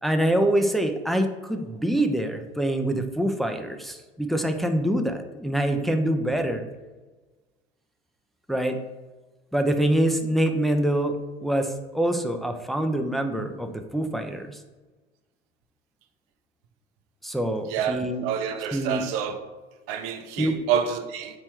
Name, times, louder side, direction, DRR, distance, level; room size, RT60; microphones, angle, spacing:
voice 1, 0.0-6.7 8.5-8.8 9.5-14.6 17.2-18.2 18.7-19.0 20.4-20.5, right 1 dB, ahead, 0.7 m, -25 dB
voice 2, 17.7-19.4 19.9-21.4, right 8 dB, 60° right, 0.9 m, -28 dB
6.1 x 4.3 x 4.5 m
hypercardioid pair, 75°, 30 cm